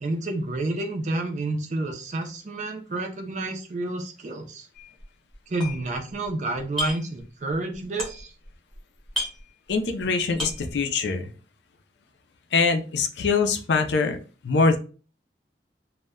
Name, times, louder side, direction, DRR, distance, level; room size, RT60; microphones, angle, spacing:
voice 1, 0.0-4.7 5.5-8.3, right 2 dB, 40° right, 4 dB, 0.4 m, -29 dB
sound 1, 4.7-5.0 5.3-6.3 6.5-7.2 7.5-8.5 8.7-8.8 9.0-10.0 10.3-10.8, left 1 dB, 5° left, 0.7 m, -33 dB
voice 2, 9.7-11.3 12.5-14.2 14.4-14.8, left 4 dB, 80° left, 6 dB, 0.4 m, -23 dB
2.1 x 2.1 x 3.5 m, 0.37 s
head